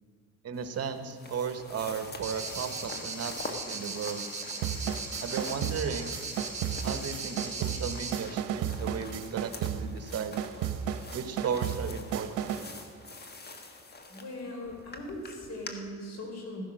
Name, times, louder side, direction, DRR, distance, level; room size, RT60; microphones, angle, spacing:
voice 1, 0.4-4.2 5.2-6.2 6.8-10.4 11.1-12.6, right 6 dB, 55° right, 9 dB, 1.1 m, -35 dB
sound 1, 0.5-15.7, left 3 dB, 35° left, 1.5 m, -46 dB
sound 2, 2.2-8.1, right 4 dB, 20° right, 4.6 m, -37 dB
sound 3, 4.6-12.8, right 8 dB, 90° right, 0.8 m, -34 dB
voice 2, 14.1-16.6, left 1 dB, 60° left, 1 dB, 4.0 m, -40 dB
15.0 x 10.5 x 6.3 m, 2.1 s
cardioid pair, 90°, 30 cm